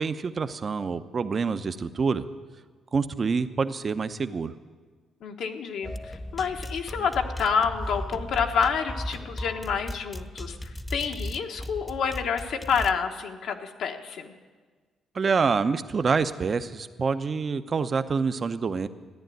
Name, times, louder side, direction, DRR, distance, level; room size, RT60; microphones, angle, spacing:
voice 1, 0.0-2.3 2.9-4.5 15.1-18.9, right 5 dB, 40° right, 11 dB, 0.8 m, -26 dB
voice 2, 5.2-14.3, left 6 dB, 75° left, 4 dB, 1.4 m, -28 dB
sound 1, 5.8-12.9, left 1 dB, 15° left, 0.5 m, -36 dB
14.0 x 10.0 x 9.3 m, 1.5 s
cardioid pair, 90°, 0 cm